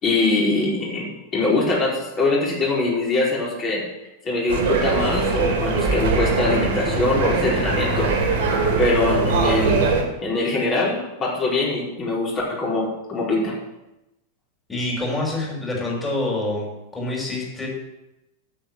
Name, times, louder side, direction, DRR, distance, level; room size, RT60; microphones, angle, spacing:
voice 1, 0.0-3.8 4.2-8.3 8.8-9.8 10.2-13.5, left 2 dB, 30° left, -4 dB, 4.8 m, -23 dB
sound 1, 4.5-10.0, right 3 dB, 50° right, 2.6 m, -21 dB
voice 2, 14.7-16.7 16.9-17.7, left 2 dB, 10° left, -3 dB, 5.5 m, -26 dB
8.9 x 8.3 x 7.8 m, 0.95 s
figure-of-eight pair, 90°, 0 cm